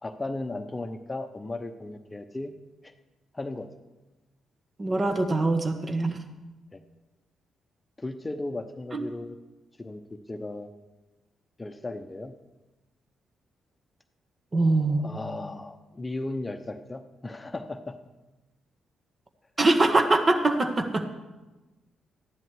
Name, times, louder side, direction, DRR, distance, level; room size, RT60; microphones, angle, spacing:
voice 1, 0.0-2.6 2.8-2.9 3.3-3.7 6.7-6.8 8.0-9.4 9.8-10.7 11.6-12.3 15.0-18.0, left 2 dB, 25° left, 8 dB, 0.9 m, -36 dB
voice 2, 4.8-6.2 8.9-9.0 14.5-15.0 19.6-21.0, right 2 dB, 35° right, 6 dB, 1.6 m, -23 dB
13.5 x 10.5 x 4.8 m, 1.1 s
hypercardioid pair, 40°, 0 cm